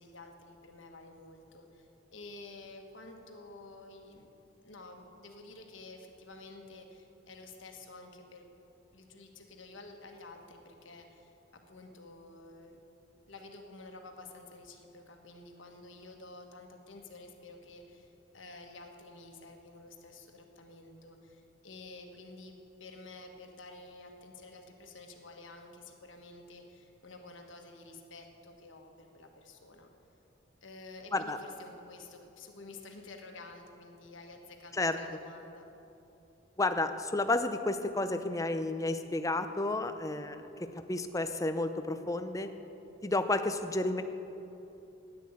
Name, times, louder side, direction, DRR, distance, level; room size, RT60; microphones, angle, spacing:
voice 1, 0.0-4.3 4.6-8.4 8.9-12.8 13.3-29.9 30.6-35.6, left 2 dB, 75° left, 3 dB, 1.5 m, -50 dB
voice 2, 36.6-42.5 43.0-44.0, left 2 dB, 15° left, 9 dB, 0.5 m, -31 dB
10.5 x 9.5 x 8.4 m, 2.9 s
head